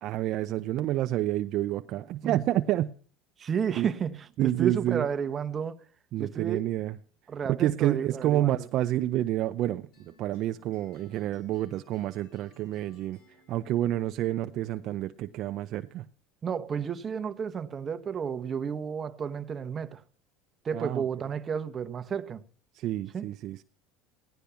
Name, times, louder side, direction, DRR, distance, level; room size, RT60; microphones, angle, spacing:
voice 1, 0.0-2.9 3.8-3.9 4.4-5.1 6.1-7.0 7.5-13.2 13.5-16.1 20.7-21.0 22.7-23.6, right 14 dB, 50° right, 0.6 m, -29 dB
voice 2, 3.4-5.8 6.2-6.6 7.3-8.5 16.4-20.0 20.6-22.4 23.1-23.2, right 7 dB, 25° right, 1.1 m, -32 dB
sound 1, 9.9-15.0, left 3 dB, 60° left, 6.4 m, -59 dB
16.5 x 11.5 x 7.0 m
supercardioid pair, 130°, 0 cm